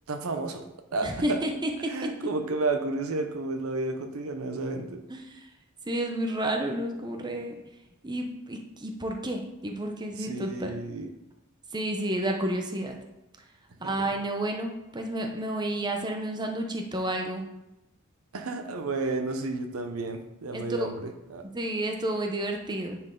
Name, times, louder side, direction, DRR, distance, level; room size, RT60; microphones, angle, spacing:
voice 1, 0.1-0.7 0.9-1.4 1.9-5.0 10.2-11.1 13.8-13.9 18.3-21.5, right 3 dB, 90° right, 7 dB, 0.7 m, -31 dB
voice 2, 1.0-2.1 5.1-5.5 5.9-7.5 8.0-10.7 11.7-13.0 13.8-17.5 20.5-20.9 21.5-23.0, right 1 dB, 20° right, 2 dB, 0.8 m, -31 dB
9.7 x 4.5 x 3.8 m, 0.93 s
head